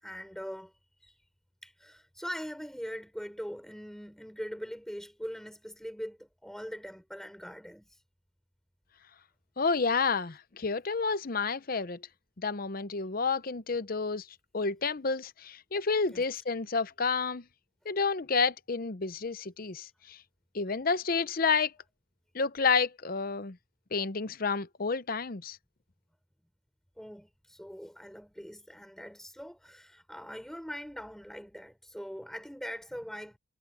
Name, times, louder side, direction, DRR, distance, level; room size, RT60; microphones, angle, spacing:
voice 1, 0.0-0.7 1.0-1.2 1.6-8.0 16.1-16.2 27.0-33.4, equal, ahead, 4.8 m, -42 dB
voice 2, 9.6-12.0 12.4-14.3 14.5-17.4 17.8-20.2 20.5-21.7 22.3-23.6 23.9-25.6, left 4 dB, 45° left, 0.7 m, -30 dB
head